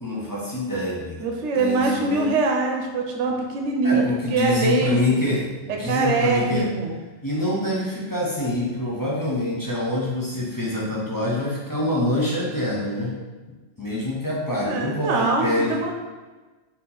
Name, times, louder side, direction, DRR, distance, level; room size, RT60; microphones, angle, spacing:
voice 1, 0.0-1.3 1.5-2.3 3.8-6.7 7.2-13.1 13.8-15.8, left 1 dB, 20° left, -6 dB, 0.6 m, -26 dB
voice 2, 1.2-4.0 4.3-5.2 5.8-7.0 14.5-15.9, right 3 dB, 80° right, 1 dB, 0.9 m, -23 dB
4.2 x 2.8 x 3.8 m, 1.3 s
omnidirectional pair, 1.2 m